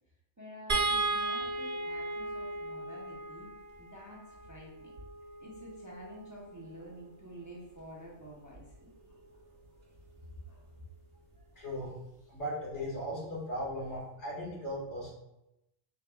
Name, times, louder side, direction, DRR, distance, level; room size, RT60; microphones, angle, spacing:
voice 1, 0.4-3.5 3.8-5.0 5.4-9.8 10.4-10.7, equal, 20° right, -4 dB, 0.6 m, -50 dB
sound 1, 0.7-7.0 8.5-8.7 9.1-9.2, right 2 dB, 60° right, 1.2 m, -36 dB
voice 2, 11.6-11.9 12.3-15.1, equal, 70° left, -6 dB, 2.1 m, -37 dB
4.9 x 4.0 x 2.3 m, 0.87 s
omnidirectional pair, 1.2 m